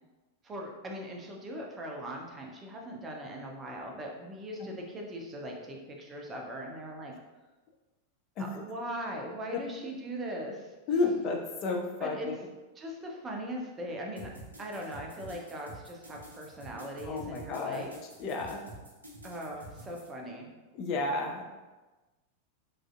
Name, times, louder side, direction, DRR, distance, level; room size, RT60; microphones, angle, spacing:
voice 1, 0.4-7.1 8.4-10.7 12.0-12.4 12.8-17.9 19.2-20.5, equal, 20° right, 0 dB, 0.5 m, -40 dB
voice 2, 10.9-12.4 17.0-17.8 18.2-18.6 20.7-21.5, left 3 dB, 40° left, 2 dB, 0.4 m, -31 dB
sound 1, 14.2-20.1, right 1 dB, 80° right, 0.7 m, -48 dB
3.1 x 2.5 x 2.4 m, 1.2 s
figure-of-eight pair, 90°, 0 cm